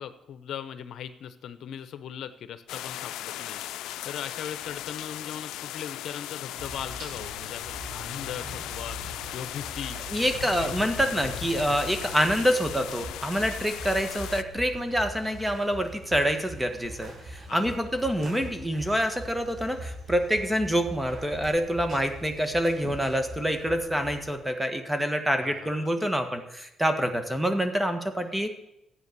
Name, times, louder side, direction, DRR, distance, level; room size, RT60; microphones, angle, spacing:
voice 1, 0.0-3.6 4.0-9.0 9.3-10.0 10.6-10.7 17.5-17.8 25.4-25.9, left 9 dB, 75° left, 11 dB, 0.9 m, -39 dB
sound 1, 2.7-14.4, left 13 dB, 90° left, 0.5 m, -37 dB
sound 2, 6.5-24.3, right 1 dB, 60° right, 4.4 m, -43 dB
voice 2, 10.1-28.6, equal, 5° right, 7 dB, 1.8 m, -26 dB
13.5 x 8.9 x 6.9 m, 0.86 s
cardioid pair, 90°, 0 cm